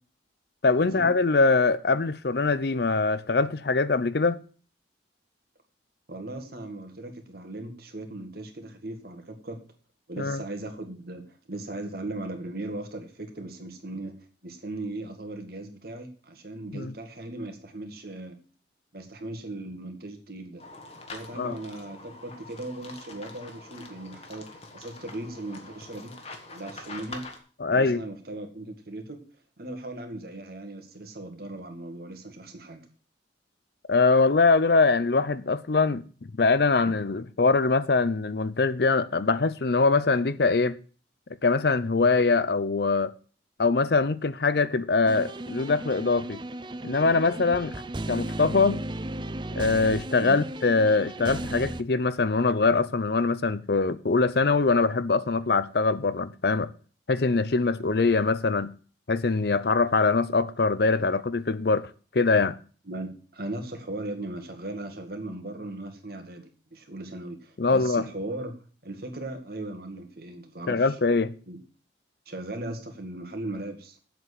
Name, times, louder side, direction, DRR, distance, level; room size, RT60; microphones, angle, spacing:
voice 1, 0.6-4.4 10.2-10.4 16.7-16.9 21.4-21.5 27.6-28.0 33.9-36.0 36.4-40.8 41.4-43.1 43.6-46.4 46.8-47.8 48.1-48.8 49.6-56.7 57.1-58.7 59.1-61.9 62.1-62.6 67.6-68.0 70.7-71.3, left 3 dB, 55° left, 0.6 m, -23 dB
voice 2, 6.1-9.6 10.1-18.3 18.9-20.6 21.1-24.5 24.7-26.1 26.5-27.2 27.7-29.2 29.6-32.9 50.2-50.4 62.9-68.6 68.8-71.0 71.5-71.6 72.3-74.0, right 2 dB, 50° right, 2.1 m, -38 dB
sound 1, 20.6-27.4, left 3 dB, 35° left, 1.7 m, -44 dB
sound 2, 45.1-51.8, right 1 dB, 25° right, 0.5 m, -35 dB
7.8 x 7.4 x 8.2 m
head